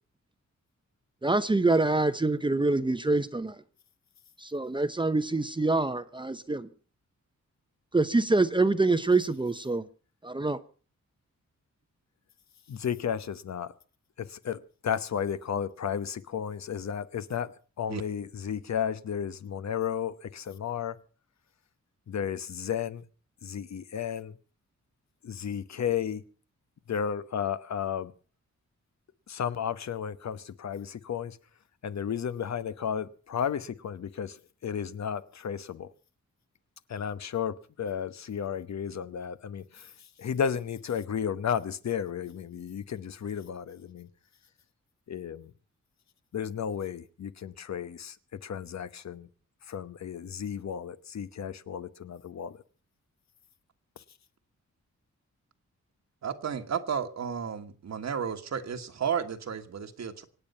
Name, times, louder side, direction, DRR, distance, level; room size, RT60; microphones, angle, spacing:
voice 1, 1.2-3.5 4.4-6.7 7.9-9.8 10.2-10.6, right 2 dB, 15° right, 0.7 m, -25 dB
voice 2, 12.7-13.7 14.2-17.5 17.8-21.0 22.1-23.0 23.4-24.3 25.2-26.2 26.9-28.1 29.3-31.4 31.8-34.4 34.6-35.9 36.9-39.9 40.2-44.1 45.1-45.5 46.3-48.1 48.4-49.3 49.7-52.6, left 8 dB, 65° left, 1.0 m, -33 dB
voice 3, 56.2-60.2, right 7 dB, 65° right, 1.5 m, -33 dB
25.5 x 9.1 x 5.4 m
wide cardioid pair, 145°, 29 cm